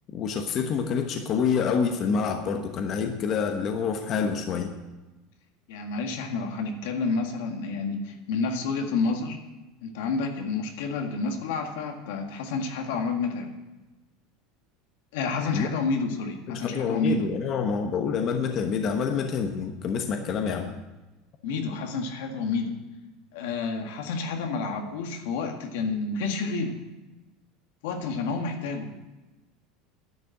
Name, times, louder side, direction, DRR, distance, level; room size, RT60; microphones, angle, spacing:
voice 1, 0.1-4.7 15.5-15.7 16.5-20.7, left 6 dB, 40° left, 5 dB, 1.0 m, -27 dB
voice 2, 5.7-9.4 9.8-13.5 15.1-17.3 20.4-20.7 21.4-22.7 23.3-26.8 27.8-28.9, left 4 dB, 80° left, 4 dB, 1.8 m, -29 dB
10.5 x 6.6 x 8.9 m, 1.1 s
supercardioid pair, 130°, 0 cm